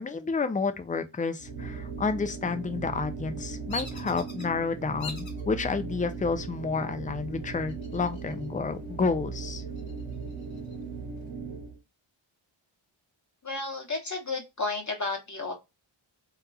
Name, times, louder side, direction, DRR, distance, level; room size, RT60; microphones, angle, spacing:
voice 1, 0.0-9.6, left 4 dB, 15° left, 0.4 m, -30 dB
sound 1, 1.4-11.8, right 4 dB, 90° right, 0.9 m, -38 dB
Bird vocalization bird call bird song, 3.7-4.5 5.0-5.4 6.0-6.5 7.7-8.5 8.8-8.9 9.4-10.8, left 2 dB, 65° left, 1.1 m, -42 dB
voice 2, 13.4-15.5, left 3 dB, 35° left, 0.9 m, -32 dB
2.9 x 2.4 x 2.3 m
cardioid pair, 50°, 49 cm